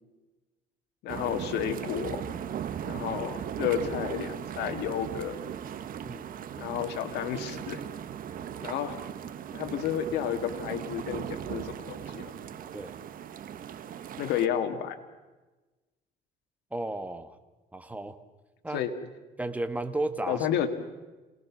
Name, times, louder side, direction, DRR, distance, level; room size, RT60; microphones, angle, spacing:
voice 1, 1.0-2.2 2.9-5.4 6.6-7.8 8.6-9.0 9.5-12.2 14.2-15.0 18.7-18.9 20.3-20.7, left 9 dB, 85° left, 7 dB, 1.9 m, -31 dB
sound 1, 1.1-14.5, right 9 dB, 55° right, 1.3 m, -38 dB
voice 2, 6.0-6.3 12.7-13.0 16.7-17.3 17.7-18.2 18.6-18.8 19.4-20.5, right 2 dB, 10° right, 9 dB, 1.4 m, -33 dB
27.0 x 19.0 x 6.1 m, 1.2 s
cardioid pair, 110°, 17 cm